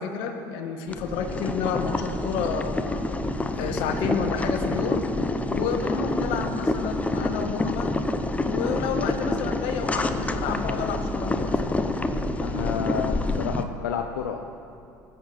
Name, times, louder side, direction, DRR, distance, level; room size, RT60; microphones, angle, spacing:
voice 1, 0.0-3.0 3.5-5.0 5.5-7.9 8.4-11.8, left 6 dB, 65° left, 5 dB, 1.7 m, -30 dB
Boiling, 0.9-13.6, left 2 dB, 15° left, 0.9 m, -27 dB
voice 2, 12.4-14.4, left 8 dB, 90° left, 5 dB, 0.7 m, -30 dB
20.0 x 8.3 x 6.1 m, 2.8 s
hypercardioid pair, 80°, 10 cm